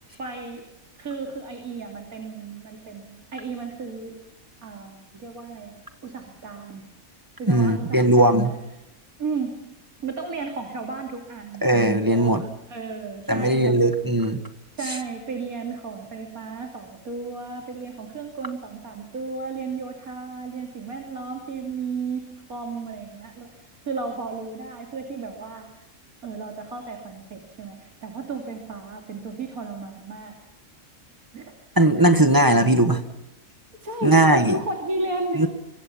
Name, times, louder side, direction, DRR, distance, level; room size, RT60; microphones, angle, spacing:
voice 1, 0.2-0.6 1.0-4.2 4.6-5.7 6.0-6.9 7.4-8.6 9.2-9.5 10.0-11.6 12.1-13.8 14.7-22.2 22.5-25.8 26.2-30.3 31.3-31.5 33.8-35.5, right 3 dB, 85° right, 2 dB, 3.3 m, -33 dB
voice 2, 7.5-8.5 11.6-12.4 13.3-14.4 14.9-15.0 31.8-33.0 34.0-34.6 35.4-35.5, right 1 dB, 15° right, 7 dB, 1.7 m, -18 dB
25.0 x 24.0 x 5.9 m, 0.92 s
omnidirectional pair, 1.5 m